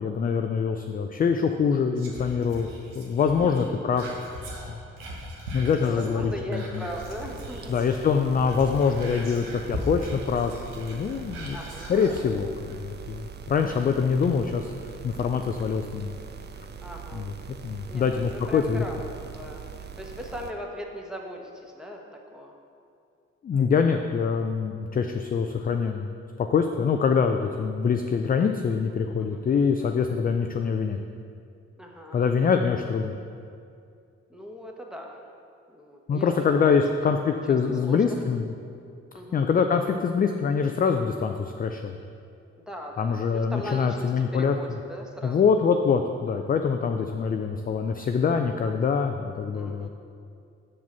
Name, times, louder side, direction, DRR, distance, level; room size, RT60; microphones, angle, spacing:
voice 1, 0.0-2.7 2.9-4.0 4.7-4.8 5.5-6.9 7.7-11.6 11.9-14.7 15.0-16.1 17.1-17.3 17.6-18.8 23.4-26.1 26.4-31.0 32.1-33.1 36.1-38.5 39.3-42.0 43.0-44.5 45.2-49.9, left 6 dB, 25° left, 5 dB, 0.4 m, -24 dB
Whispering, 2.0-8.0 8.3-12.2 12.7-12.8, equal, 80° right, 1.0 m, -39 dB
voice 2, 3.4-3.8 5.8-7.8 11.5-11.9 16.8-17.3 17.9-22.0 22.3-22.5 29.2-29.4 31.8-32.4 34.3-35.2 35.7-36.3 36.7-37.1 37.5-37.6 37.8-38.2 39.1-39.4 42.7-45.5 49.5-49.9, equal, ahead, 0 dB, 1.1 m, -39 dB
sound 1, 6.9-20.5, right 7 dB, 30° right, 0.5 m, -42 dB
6.0 x 4.7 x 5.5 m, 2.4 s
hypercardioid pair, 40°, 34 cm